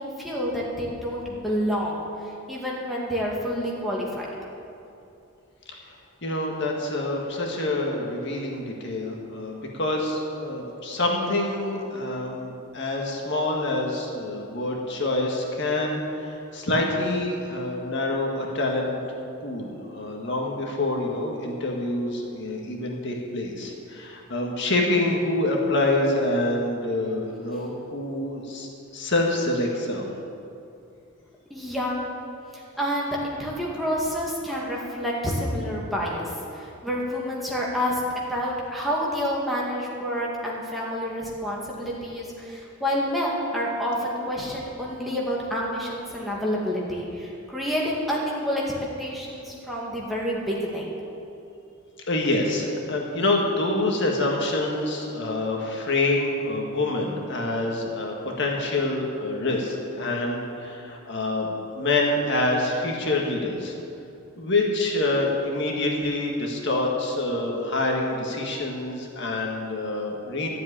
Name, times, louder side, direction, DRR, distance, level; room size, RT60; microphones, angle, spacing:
voice 1, 0.0-2.0 2.2-4.3 31.5-31.9 32.5-48.6 49.0-50.9, equal, ahead, -5 dB, 2.3 m, -28 dB
voice 2, 6.2-19.0 19.4-28.7 28.9-30.1 52.1-63.7 64.4-70.5, left 2 dB, 55° left, -1 dB, 1.9 m, -26 dB
13.0 x 7.7 x 9.9 m, 2.7 s
head